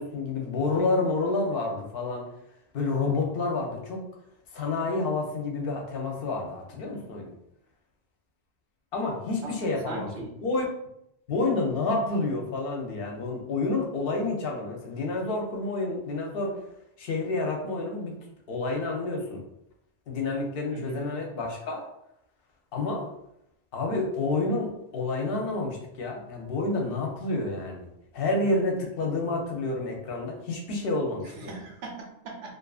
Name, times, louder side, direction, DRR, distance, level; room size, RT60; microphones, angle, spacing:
voice 1, 0.0-2.3 2.7-4.0 4.5-7.3 8.9-10.1 10.4-10.6 11.3-16.5 17.0-18.1 18.5-19.4 20.1-21.9 22.7-23.1 23.7-27.9 28.1-31.6, left 3 dB, 60° left, 1 dB, 0.8 m, -29 dB
voice 2, 9.9-10.3 20.7-21.0 31.2-32.5, right 3 dB, 70° right, 1 dB, 0.8 m, -39 dB
2.6 x 2.4 x 2.3 m, 0.78 s
omnidirectional pair, 1.2 m